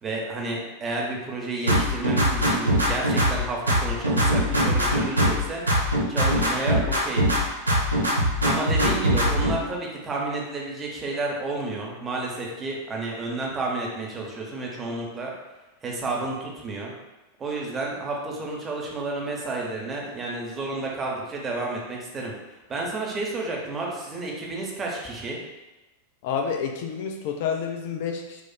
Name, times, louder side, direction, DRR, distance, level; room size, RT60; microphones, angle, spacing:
voice 1, 0.0-5.6 6.1-7.3 8.4-15.3 15.8-16.9 17.4-22.3 22.7-25.4, right 2 dB, 20° right, -2 dB, 0.7 m, -31 dB
sound 1, 1.7-3.4 3.7-5.4 5.7-7.4 7.7-9.5, equal, 80° right, 0.5 m, -21 dB
voice 2, 26.2-28.4, left 6 dB, 50° left, 4 dB, 0.3 m, -29 dB
4.2 x 2.3 x 2.2 m, 1.1 s
figure-of-eight pair, 90°, 0 cm